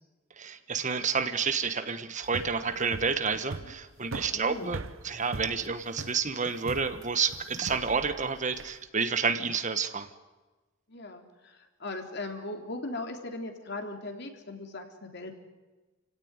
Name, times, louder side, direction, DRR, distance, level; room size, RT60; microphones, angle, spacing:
voice 1, 0.4-10.1, right 5 dB, 40° right, 10 dB, 1.4 m, -30 dB
sound 1, 2.2-8.8, right 3 dB, 85° right, 1.0 m, -41 dB
voice 2, 4.3-4.7 10.9-15.3, left 2 dB, 55° left, 4 dB, 3.6 m, -39 dB
29.0 x 17.0 x 9.7 m, 1.2 s
head